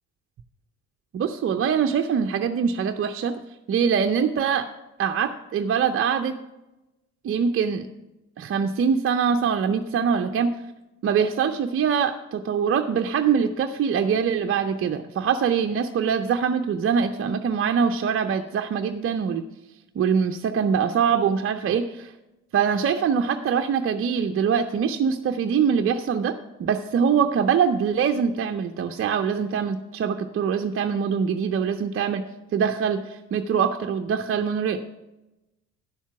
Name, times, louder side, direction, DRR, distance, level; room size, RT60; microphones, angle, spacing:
voice 1, 1.1-3.4 3.7-4.7 5.0-6.4 7.2-7.9 8.4-10.6 11.0-19.4 19.9-22.1 22.5-32.2 32.5-34.8, right 7 dB, 35° right, 5 dB, 0.7 m, -23 dB
10.5 x 7.2 x 5.9 m, 0.99 s
hypercardioid pair, 55°, 36 cm